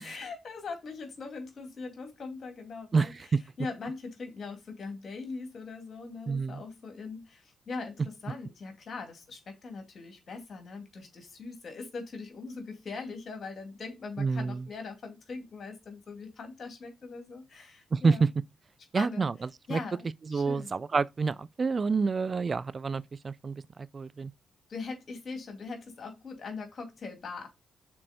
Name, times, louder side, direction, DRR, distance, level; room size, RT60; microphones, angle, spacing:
voice 1, 0.0-18.3 18.9-19.3 19.7-20.0 20.3-20.7 24.7-27.5, left 4 dB, 55° left, 2.6 m, -41 dB
voice 2, 2.9-3.4 6.3-6.6 14.2-14.6 17.9-18.3 18.9-19.3 19.7-19.8 20.3-23.6 23.9-24.3, right 4 dB, 45° right, 0.4 m, -28 dB
6.1 x 4.3 x 5.1 m
supercardioid pair, 50°, 0 cm